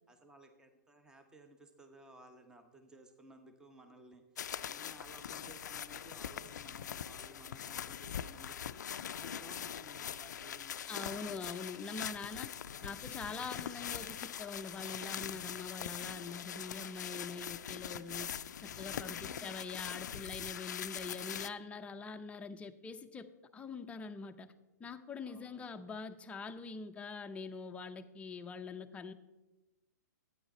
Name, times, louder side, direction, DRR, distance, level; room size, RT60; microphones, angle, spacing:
voice 1, 0.1-4.2 4.6-8.7 9.0-11.1 11.7-12.1 12.7-13.1 18.5-19.6 25.2-25.7, right 1 dB, 5° right, 6 dB, 1.0 m, -57 dB
sound 1, 4.4-21.5, left 9 dB, 70° left, 0.4 m, -42 dB
voice 2, 10.9-12.5 12.8-24.5 24.8-29.1, left 4 dB, 15° left, 7 dB, 0.6 m, -44 dB
12.0 x 9.3 x 4.3 m, 1.1 s
hypercardioid pair, 125°, 10 cm